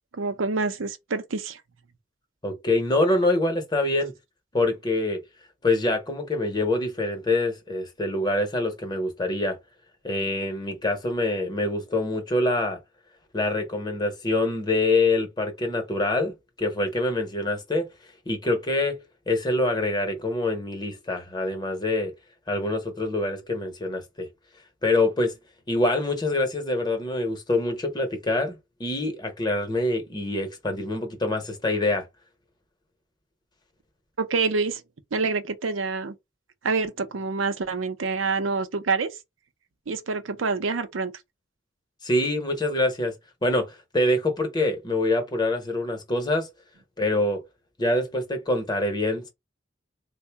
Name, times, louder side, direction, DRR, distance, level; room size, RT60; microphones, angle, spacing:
voice 1, 0.1-1.6 34.2-34.8 35.1-36.2 36.6-39.1 39.9-41.1, right 4 dB, 85° right, 0.6 m, -27 dB
voice 2, 2.4-4.1 4.5-5.2 5.6-9.6 10.0-12.8 13.3-17.9 18.3-19.0 19.3-22.1 22.5-24.3 24.8-25.4 25.7-28.5 28.8-32.1 42.0-43.1 43.4-46.5 47.0-47.4 47.8-49.3, left 2 dB, 20° left, 0.8 m, -25 dB
3.7 x 2.1 x 3.3 m
head